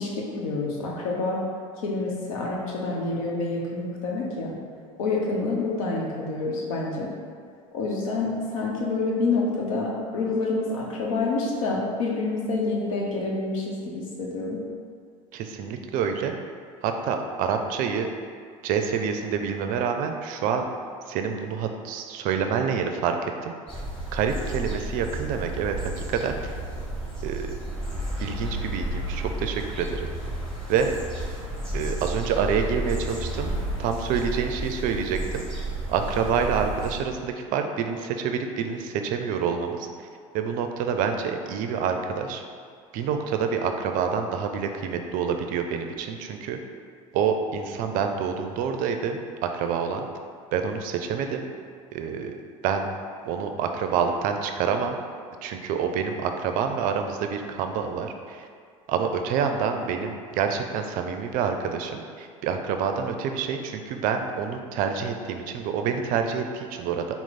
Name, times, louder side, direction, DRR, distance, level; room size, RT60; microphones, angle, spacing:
voice 1, 0.0-1.4 1.8-4.6 5.0-7.1 7.7-14.6, left 3 dB, 75° left, -2 dB, 0.8 m, -27 dB
voice 2, 15.3-16.3 16.8-18.1 18.6-20.6 21.1-23.5 24.1-26.6 27.2-27.5 28.2-30.1 30.7-30.9 31.7-33.5 33.8-35.6 35.9-39.9 40.3-42.4 42.9-46.6 47.1-50.1 50.5-51.4 51.9-52.4 52.6-52.9 53.2-55.0 55.4-58.5 58.9-67.1, right 6 dB, 50° right, 5 dB, 0.4 m, -27 dB
sound 1, 23.7-37.0, right 1 dB, 5° left, 1.4 m, -32 dB
4.4 x 2.0 x 4.0 m, 2.1 s
hypercardioid pair, 80°, 17 cm